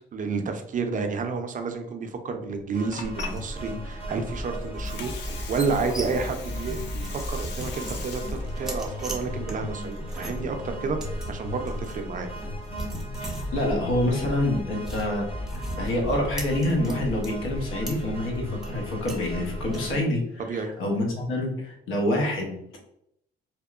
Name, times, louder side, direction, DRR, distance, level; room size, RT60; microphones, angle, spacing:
voice 1, 0.1-5.1 5.5-12.3 20.4-20.7, right 4 dB, 40° right, 6 dB, 0.4 m, -30 dB
Water, 2.6-10.5, left 5 dB, 60° left, 0.5 m, -43 dB
sound 1, 2.7-20.0, left 1 dB, 30° left, 0.8 m, -38 dB
sound 2, 3.0-20.0, right 1 dB, ahead, 0.7 m, -36 dB
voice 2, 13.2-20.2 20.5-22.8, left 1 dB, 80° left, 0 dB, 0.8 m, -27 dB
2.8 x 2.0 x 2.3 m, 0.76 s
cardioid pair, 90°, 20 cm